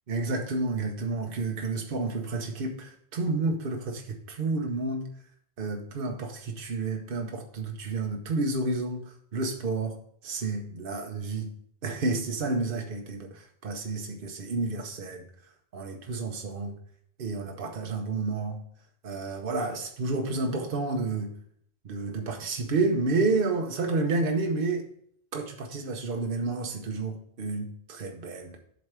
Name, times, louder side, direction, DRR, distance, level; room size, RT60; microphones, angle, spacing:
voice 1, 0.1-5.1 5.6-10.0 10.2-11.5 11.8-15.2 15.7-16.8 17.2-18.6 19.0-21.3 21.8-24.9 25.3-28.6, right 3 dB, 60° right, 3 dB, 1.0 m, -30 dB
8.0 x 3.3 x 5.9 m, 0.64 s
omnidirectional pair, 1.0 m